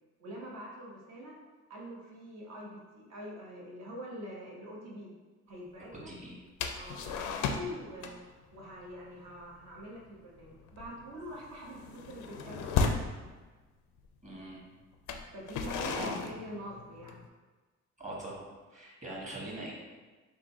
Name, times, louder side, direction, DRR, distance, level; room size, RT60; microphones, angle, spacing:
voice 1, 0.2-1.3 1.7-5.1 5.5-6.1 6.7-12.9 15.3-17.2, equal, 60° right, -3 dB, 1.1 m, -45 dB
voice 2, 6.0-6.4 14.2-14.6 15.8-16.3 18.0-19.7, right 1 dB, 25° right, -5 dB, 1.3 m, -42 dB
sound 1, 6.6-7.8 8.0-8.3 8.6-8.9 9.3-9.5 9.8-10.1 10.5-13.1 14.0-14.1 14.9-17.3, left 5 dB, 85° left, 0.5 m, -34 dB
3.7 x 2.2 x 4.3 m, 1.3 s
cardioid pair, 90°, 30 cm